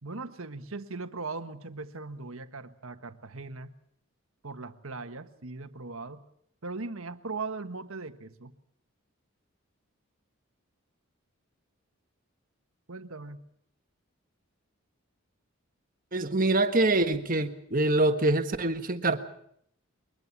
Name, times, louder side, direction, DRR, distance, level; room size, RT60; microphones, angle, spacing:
voice 1, 0.0-3.7 4.4-6.2 6.6-8.5 12.9-13.4, right 3 dB, 75° right, 9 dB, 1.4 m, -39 dB
voice 2, 16.1-19.2, right 2 dB, 40° right, 8 dB, 1.5 m, -25 dB
22.5 x 21.0 x 7.4 m, 0.69 s
head